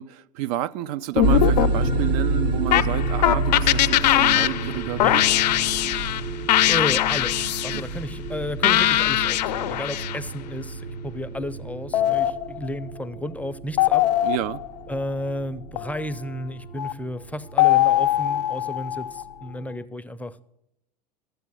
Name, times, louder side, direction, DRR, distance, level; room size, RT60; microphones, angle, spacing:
voice 1, 0.0-5.2 7.7-7.8 14.2-14.6, right 15 dB, 60° right, 0.4 m, -30 dB
sound 1, 1.2-2.2 2.7-6.2 6.5-7.8 8.6-10.2 11.9-12.8 13.8-14.8 15.8-16.0 16.8-16.9 17.6-19.3, left 13 dB, 75° left, 0.6 m, -21 dB
sound 2, 1.2-19.8, right 2 dB, 80° right, 1.5 m, -29 dB
voice 2, 6.6-14.1 14.9-20.5, left 1 dB, 5° left, 0.5 m, -33 dB
13.0 x 8.0 x 6.2 m
hypercardioid pair, 90°, 21 cm